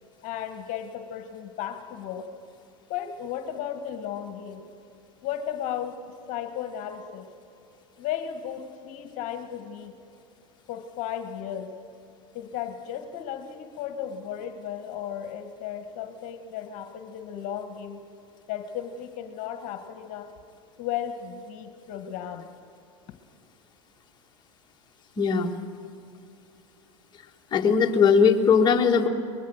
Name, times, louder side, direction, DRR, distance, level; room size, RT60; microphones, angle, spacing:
voice 1, 0.2-2.3 2.9-4.7 5.2-6.0 6.3-7.2 8.0-9.9 10.7-11.7 12.3-18.0 18.5-20.3 20.8-22.5, left 9 dB, 50° left, 7 dB, 1.6 m, -35 dB
voice 2, 25.2-25.5 27.5-29.1, left 6 dB, 30° left, 1 dB, 1.8 m, -19 dB
23.5 x 20.5 x 6.4 m, 2.6 s
hypercardioid pair, 95°, 16 cm